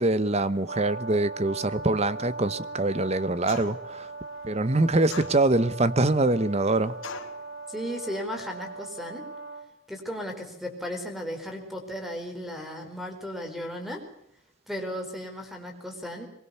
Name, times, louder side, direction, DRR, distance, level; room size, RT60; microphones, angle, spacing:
voice 1, 0.0-4.1 4.4-7.0, right 2 dB, 30° right, 0.9 m, -24 dB
Brass instrument, 0.7-9.7, right 3 dB, 55° right, 2.7 m, -39 dB
sound 1, 3.5-3.9 5.1-5.8 7.0-7.4, left 4 dB, 80° left, 3.0 m, -39 dB
voice 2, 7.7-9.3 9.9-14.0 14.7-16.3, equal, ahead, 4.5 m, -35 dB
23.0 x 21.5 x 6.9 m
head